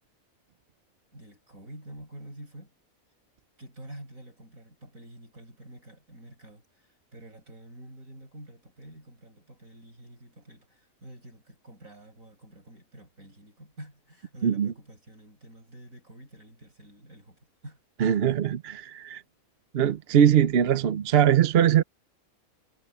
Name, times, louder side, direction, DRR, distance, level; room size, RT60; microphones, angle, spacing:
voice 1, 1.1-2.7 3.6-17.8, right 1 dB, 75° right, 7.3 m, -48 dB
voice 2, 14.4-14.7 18.0-19.2 19.7-21.8, right 9 dB, 55° right, 0.9 m, -21 dB
omnidirectional pair, 1.5 m